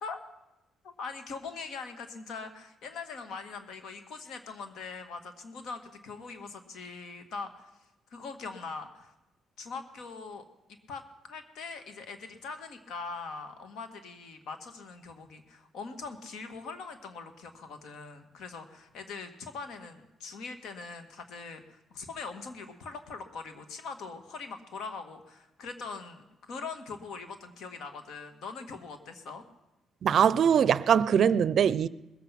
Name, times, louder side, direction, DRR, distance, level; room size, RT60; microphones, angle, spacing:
voice 1, 0.8-7.7 8.1-9.1 9.6-10.4 10.9-11.0 11.3-29.4, left 4 dB, 75° left, 1.7 m, -42 dB
voice 2, 30.0-31.9, right 8 dB, 60° right, 0.4 m, -22 dB
20.5 x 8.0 x 5.9 m
cardioid pair, 90°, 0 cm